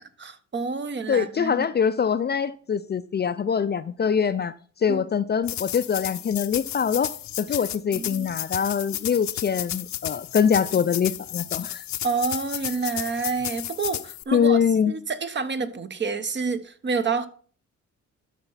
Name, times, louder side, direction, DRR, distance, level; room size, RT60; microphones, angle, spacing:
voice 1, 0.2-1.7 4.9-5.0 7.9-8.3 12.0-14.6 14.9-17.3, right 4 dB, 35° right, 1.1 m, -28 dB
voice 2, 1.1-4.5 4.8-11.8 14.3-14.9, left 7 dB, 35° left, 0.5 m, -24 dB
sound 1, 5.4-14.2, left 13 dB, 65° left, 0.7 m, -33 dB
12.5 x 4.3 x 5.7 m
cardioid pair, 90°, 30 cm